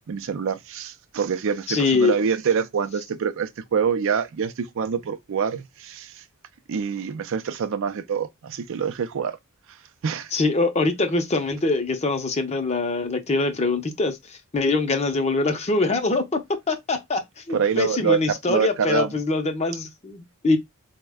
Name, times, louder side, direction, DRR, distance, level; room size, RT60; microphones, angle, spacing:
voice 1, 0.1-6.2 6.7-9.4 10.0-10.3 17.5-19.1, right 6 dB, 60° right, 0.4 m, -25 dB
voice 2, 1.7-2.1 10.3-17.2 17.5-20.6, left 3 dB, 30° left, 0.6 m, -23 dB
4.1 x 2.1 x 3.4 m
head